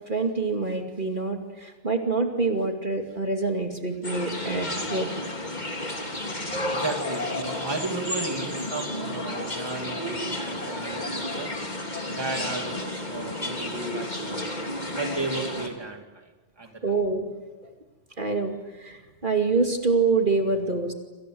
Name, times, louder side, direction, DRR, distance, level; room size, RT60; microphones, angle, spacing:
voice 1, 0.1-5.3 16.8-17.3 18.2-20.9, right 3 dB, 45° right, 3 dB, 2.6 m, -26 dB
sound 1, 4.0-15.7, left 1 dB, 40° left, 3.3 m, -32 dB
voice 2, 6.7-11.5 12.1-14.4 14.9-16.3 16.6-16.7, right 3 dB, 20° right, 3 dB, 2.5 m, -34 dB
28.0 x 27.0 x 7.8 m, 1.2 s
omnidirectional pair, 1.2 m